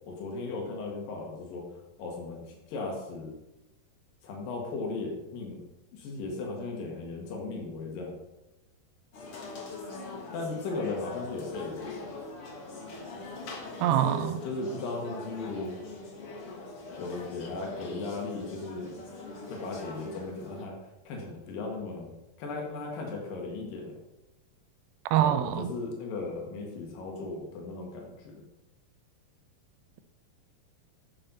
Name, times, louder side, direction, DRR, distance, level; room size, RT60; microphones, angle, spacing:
voice 1, 0.0-1.7 2.0-3.4 4.2-5.6 5.9-8.1 10.3-12.1 13.9-15.8 17.0-19.0 19.5-20.8 21.1-22.1 22.4-24.0 25.1-28.4, left 3 dB, 70° left, -1 dB, 3.4 m, -36 dB
sound 1, 9.1-20.6, left 3 dB, 50° left, 2.0 m, -42 dB
voice 2, 13.8-14.4 25.1-25.7, right 11 dB, 80° right, 11 dB, 2.3 m, -25 dB
10.0 x 6.7 x 4.2 m, 0.96 s
omnidirectional pair, 4.4 m